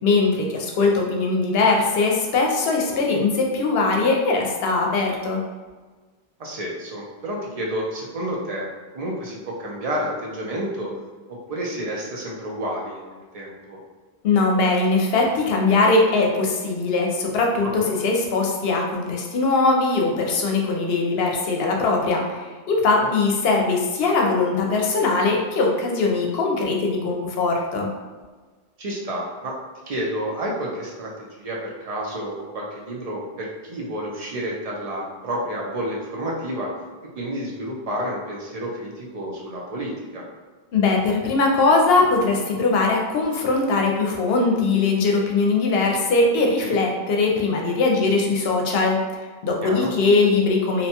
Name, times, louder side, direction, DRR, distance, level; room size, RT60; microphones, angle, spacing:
voice 1, 0.0-5.4 14.2-27.9 40.7-49.0 49.4-50.9, left 3 dB, 75° left, 0 dB, 0.8 m, -21 dB
voice 2, 6.4-8.7 8.9-10.9 11.3-13.8 17.6-17.9 22.9-23.1 28.8-29.6 29.9-36.7 37.1-40.3 46.6-46.8 49.6-49.9, right 1 dB, 50° right, -2 dB, 0.5 m, -30 dB
2.7 x 2.2 x 2.7 m, 1.4 s
omnidirectional pair, 1.0 m